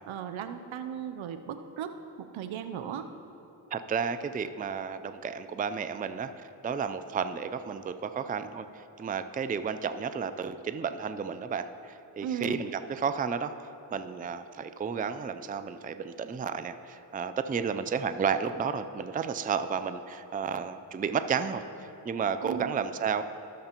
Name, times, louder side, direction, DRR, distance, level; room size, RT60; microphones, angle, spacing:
voice 1, 0.1-3.1 12.2-12.7 22.4-22.8, right 8 dB, 70° right, 9 dB, 0.7 m, -37 dB
voice 2, 3.7-6.3 6.6-21.6 22.0-23.2, right 6 dB, 20° right, 11 dB, 0.4 m, -32 dB
18.0 x 6.6 x 3.0 m, 2.9 s
supercardioid pair, 50°, 48 cm